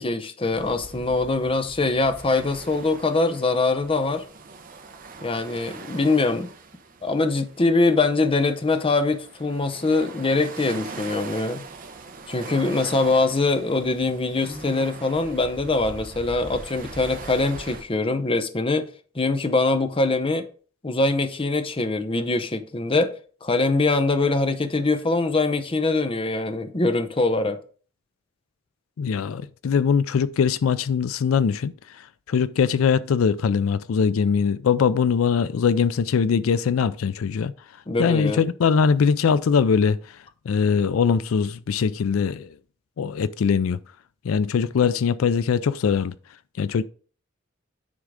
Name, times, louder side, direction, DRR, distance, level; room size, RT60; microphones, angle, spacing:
voice 1, 0.0-4.2 5.2-6.5 7.0-11.6 12.3-18.9 19.1-20.5 20.8-23.1 23.4-27.6 37.9-38.5, left 3 dB, 25° left, 0.7 m, -23 dB
sound 1, 0.5-17.8, right 3 dB, 45° right, 0.9 m, -41 dB
voice 2, 29.0-31.7 32.3-37.5 38.0-40.0 40.5-42.5 43.0-43.8 44.2-46.1 46.6-46.8, left 6 dB, 85° left, 0.4 m, -21 dB
9.6 x 3.7 x 4.8 m
head